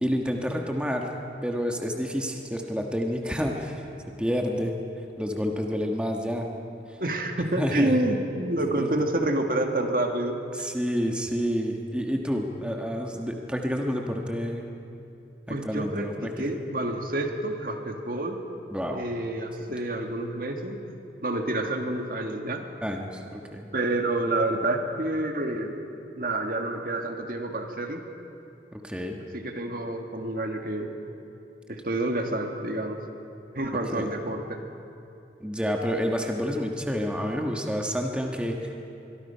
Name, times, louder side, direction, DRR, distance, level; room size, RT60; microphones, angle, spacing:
voice 1, 0.0-1.1 1.4-3.9 4.2-4.7 5.2-6.5 7.6-8.0 8.7-8.9 10.5-14.7 15.5-16.3 18.7-19.0 21.6-21.7 22.8-23.7 28.7-29.2 33.9-34.1 35.4-38.7, equal, 5° right, 1 dB, 1.4 m, -29 dB
voice 2, 7.0-10.4 15.5-16.1 16.4-18.4 18.9-20.8 21.2-22.6 23.7-25.8 26.2-28.0 29.3-30.9 31.7-33.0 33.5-34.6, right 1 dB, 55° right, 4 dB, 1.8 m, -28 dB
25.0 x 22.5 x 5.6 m, 2.8 s
head